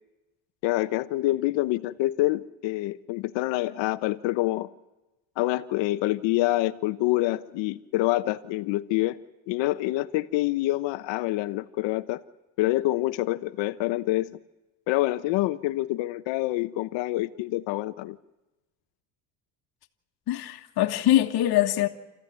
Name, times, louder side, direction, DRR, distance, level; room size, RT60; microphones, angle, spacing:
voice 1, 0.6-4.7 5.4-9.2 9.5-12.2 12.6-14.3 14.9-18.2, left 17 dB, 75° left, 1.0 m, -26 dB
voice 2, 20.3-21.9, left 13 dB, 60° left, 1.6 m, -23 dB
28.0 x 15.0 x 9.4 m
cardioid pair, 140°, 44 cm